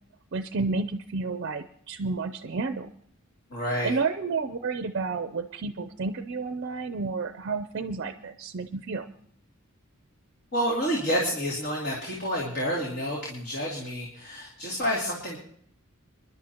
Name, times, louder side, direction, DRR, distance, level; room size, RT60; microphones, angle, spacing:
voice 1, 0.3-2.9 3.8-9.1, right 4 dB, 50° right, 8 dB, 0.5 m, -31 dB
voice 2, 3.5-4.0 10.5-15.4, equal, 50° left, -3 dB, 2.7 m, -29 dB
27.0 x 11.0 x 2.9 m, 0.64 s
head